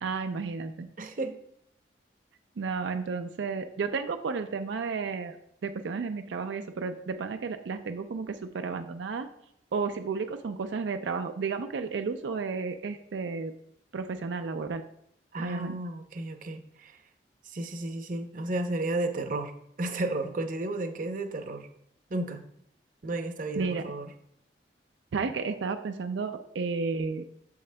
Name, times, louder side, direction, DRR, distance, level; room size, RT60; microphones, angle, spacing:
voice 1, 0.0-0.9 2.6-5.4 5.6-9.3 9.7-13.5 13.9-14.8 15.4-15.8 23.6-23.9 25.1-27.2, right 4 dB, 85° right, 7 dB, 0.4 m, -32 dB
voice 2, 1.0-1.3 15.3-17.0 17.4-19.5 19.8-21.7 22.1-22.4 23.0-24.1, right 2 dB, 50° right, 6 dB, 0.7 m, -33 dB
8.4 x 6.9 x 2.2 m, 0.73 s
head